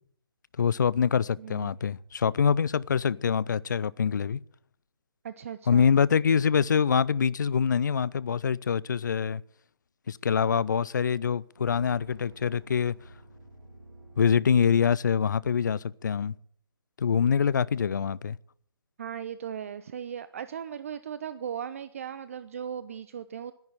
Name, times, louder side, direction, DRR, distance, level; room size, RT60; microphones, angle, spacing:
voice 1, 0.6-4.4 5.7-9.4 10.1-12.9 14.2-16.3 17.0-18.4, left 7 dB, 50° left, 0.5 m, -25 dB
voice 2, 1.4-1.7 5.2-5.9 19.0-23.5, right 8 dB, 35° right, 0.6 m, -37 dB
sound 1, 11.6-15.0, right 2 dB, 90° right, 3.8 m, -49 dB
12.0 x 10.5 x 8.8 m
figure-of-eight pair, 145°, 13 cm